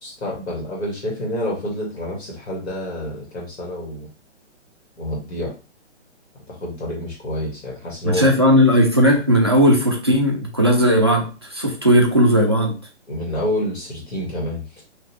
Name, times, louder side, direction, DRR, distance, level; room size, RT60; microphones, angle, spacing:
voice 1, 0.0-4.1 5.0-5.5 6.5-8.3 13.1-14.8, left 1 dB, 65° left, -2 dB, 2.0 m, -28 dB
voice 2, 8.0-12.7, equal, 25° right, 0 dB, 0.3 m, -16 dB
3.7 x 2.9 x 3.0 m, 0.32 s
hypercardioid pair, 165°, 35 cm